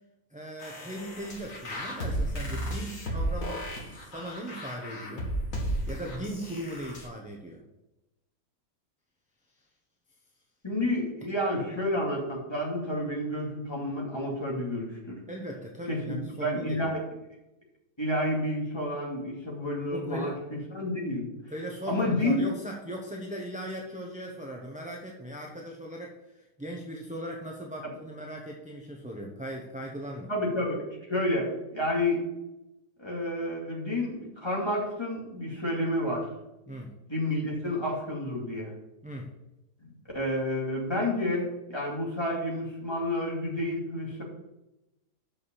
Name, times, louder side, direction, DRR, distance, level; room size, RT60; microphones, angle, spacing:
voice 1, 0.3-5.3 5.9-7.6 15.3-16.9 19.9-20.3 21.5-30.3 36.7-36.9 39.0-39.3, equal, 5° right, -1 dB, 0.7 m, -38 dB
sound 1, 0.6-7.1, right 1 dB, 55° left, 2.1 m, -34 dB
voice 2, 10.6-15.2 15.9-17.0 18.0-21.3 21.9-22.4 30.3-30.8 31.1-32.2 33.0-36.3 37.1-38.7 40.1-44.2, left 1 dB, 15° left, -3 dB, 2.4 m, -30 dB
6.5 x 5.9 x 7.0 m, 0.94 s
omnidirectional pair, 1.7 m